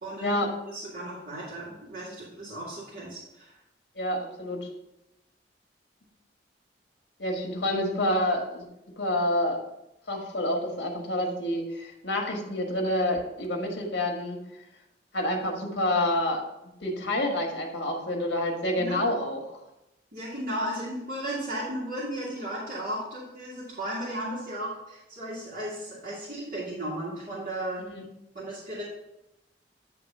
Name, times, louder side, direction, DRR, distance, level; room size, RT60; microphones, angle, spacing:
voice 1, 0.0-0.4 0.7-3.5 18.8-19.0 20.1-27.8 28.3-28.8, right 1 dB, 55° right, -8 dB, 2.0 m, -35 dB
voice 2, 3.9-4.6 7.2-8.6 9.0-9.6 10.1-14.4 15.1-16.4 16.8-19.6 27.8-28.0, left 1 dB, 70° left, 1 dB, 1.5 m, -28 dB
9.7 x 3.3 x 5.3 m, 0.88 s
head